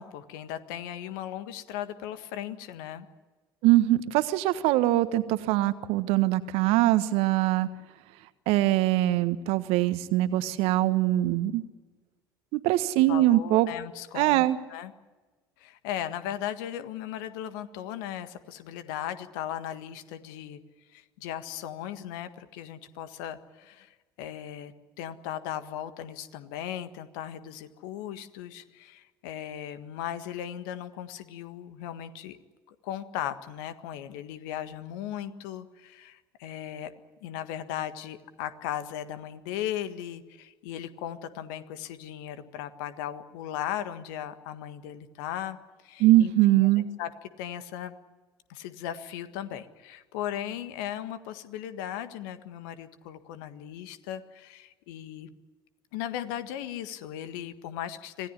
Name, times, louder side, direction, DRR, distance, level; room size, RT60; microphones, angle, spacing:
voice 1, 0.0-3.1 13.1-14.9 15.6-20.6 20.9-32.4 32.7-36.9 37.2-46.7 47.0-47.1 47.4-48.0 48.5-55.3 55.9-58.3, left 11 dB, 65° left, 11 dB, 1.6 m, -37 dB
voice 2, 3.6-7.7 8.5-11.6 12.5-13.7 14.1-14.6 46.0-46.9, right 15 dB, 60° right, 12 dB, 1.4 m, -22 dB
26.0 x 17.5 x 10.0 m, 1.3 s
figure-of-eight pair, 60°, 12 cm